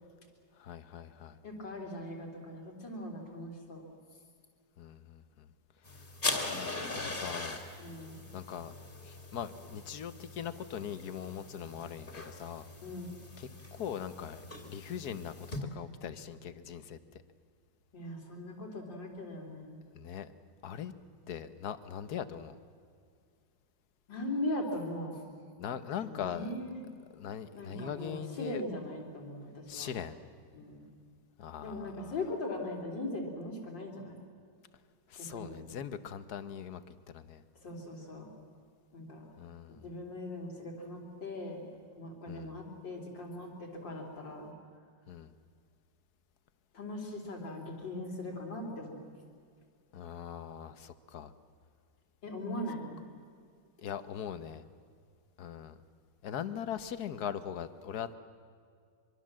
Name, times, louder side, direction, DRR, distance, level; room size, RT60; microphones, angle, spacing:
voice 1, 0.6-1.4 4.8-5.5 5.9-6.0 6.5-7.6 8.3-8.7 9.0-12.7 13.4-17.0 19.9-20.3 20.6-20.9 21.3-22.6 25.6-26.5 27.1-28.6 29.7-30.2 31.4-32.2 35.1-37.4 39.4-39.9 42.3-42.5 45.1-45.3 49.9-51.3 53.8-54.6 55.4-55.8 56.2-58.1, left 8 dB, 60° left, 12 dB, 1.4 m, -41 dB
voice 2, 1.4-3.8 7.0-7.1 7.8-8.2 12.8-13.1 17.9-19.8 24.1-25.2 26.0-26.8 27.5-29.9 30.5-30.8 31.6-34.2 35.3-35.6 37.6-38.3 38.9-39.2 39.8-41.6 42.0-44.5 46.7-49.0 52.2-53.0, left 1 dB, 80° left, 0 dB, 4.3 m, -40 dB
sound 1, 5.8-15.6, left 2 dB, 30° left, 2.5 m, -41 dB
24.0 x 23.5 x 7.5 m, 2.2 s
omnidirectional pair, 2.0 m